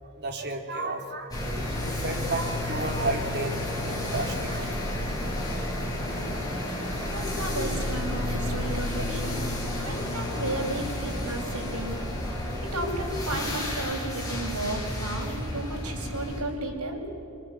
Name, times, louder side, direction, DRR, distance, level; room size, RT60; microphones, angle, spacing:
voice 1, 0.0-3.6 3.8-4.8, right 2 dB, 50° right, 3 dB, 3.0 m, -33 dB
sound 1, 1.3-16.4, left 1 dB, 15° left, 7.3 m, -31 dB
voice 2, 7.1-9.5 9.8-12.0 12.6-17.0, right 1 dB, 85° right, 1 dB, 5.6 m, -33 dB
25.5 x 24.0 x 9.6 m, 2.8 s
head